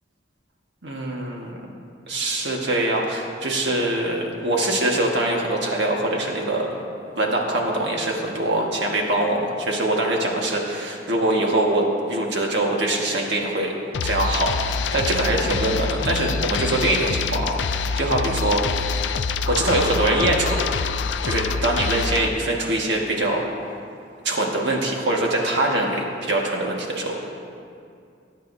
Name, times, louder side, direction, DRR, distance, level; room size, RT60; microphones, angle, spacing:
voice 1, 0.8-1.5 2.1-6.7 7.1-13.8 14.0-19.1 19.5-20.7 21.2-23.4 24.2-27.3, right 1 dB, 65° right, -1 dB, 1.6 m, -23 dB
sound 1, 13.9-22.3, left 5 dB, 70° left, 0.4 m, -26 dB
19.5 x 9.2 x 2.7 m, 2.4 s
head